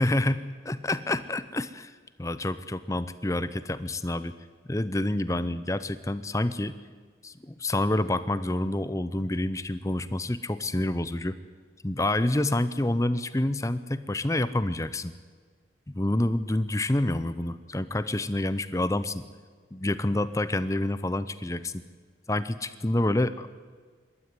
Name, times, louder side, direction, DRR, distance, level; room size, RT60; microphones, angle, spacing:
voice 1, 0.0-1.9 2.2-4.3 4.7-6.7 7.2-11.4 11.8-15.1 15.9-19.2 19.7-21.8 22.3-23.5, left 1 dB, 15° left, 13 dB, 0.7 m, -28 dB
27.0 x 12.5 x 9.7 m, 1.6 s
head